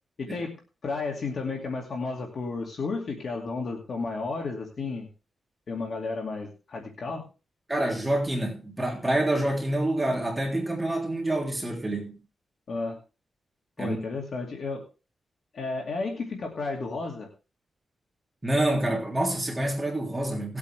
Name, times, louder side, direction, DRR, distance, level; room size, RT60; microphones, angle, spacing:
voice 1, 0.2-5.1 5.7-7.3 12.7-13.0 13.8-14.9 15.5-17.3, left 3 dB, 55° left, 2.4 m, -32 dB
voice 2, 7.7-12.2 13.8-14.0 18.4-20.6, right 1 dB, 10° right, 3.4 m, -27 dB
19.0 x 8.4 x 3.4 m
wide cardioid pair, 140°, 0 cm